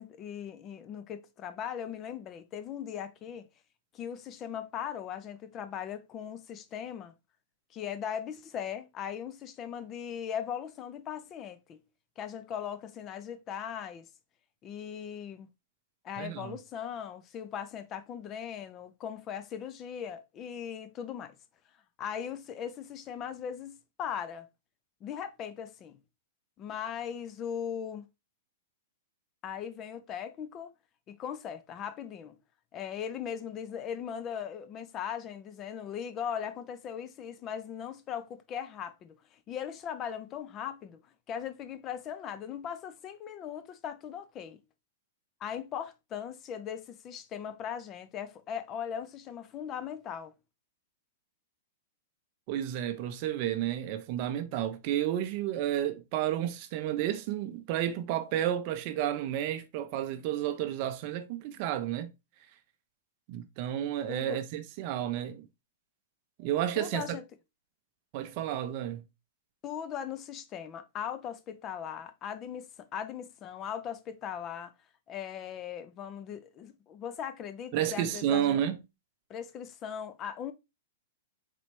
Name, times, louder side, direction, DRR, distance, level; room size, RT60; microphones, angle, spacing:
voice 1, 0.0-3.5 3.9-7.1 7.7-11.8 12.2-14.1 14.6-15.5 16.0-21.4 22.0-24.5 25.0-26.0 26.6-28.0 29.4-30.7 31.1-32.4 32.7-44.6 45.4-50.4 64.1-64.4 66.8-67.2 69.6-74.7 75.1-78.6 79.3-80.5, left 8 dB, 25° left, 0.4 m, -39 dB
voice 2, 16.2-16.6 52.5-62.1 63.3-65.5 66.4-67.0 68.1-69.0 77.7-78.8, right 11 dB, 40° right, 0.5 m, -31 dB
4.1 x 3.2 x 3.0 m
supercardioid pair, 160°, 0 cm